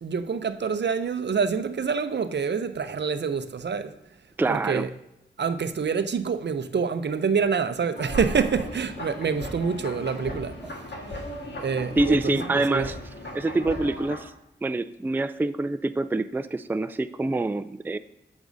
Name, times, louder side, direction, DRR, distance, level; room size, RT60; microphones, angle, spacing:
voice 1, 0.0-3.9 4.5-4.9 5.4-10.6 11.6-12.9, right 6 dB, 65° right, 0.5 m, -26 dB
voice 2, 4.4-4.9 10.6-10.7 12.0-13.0 13.3-14.3 14.6-18.0, right 2 dB, 10° right, 0.3 m, -26 dB
sound 1, 7.9-14.2, left 1 dB, 65° left, 1.5 m, -37 dB
8.1 x 7.3 x 2.6 m
cardioid pair, 50°, 19 cm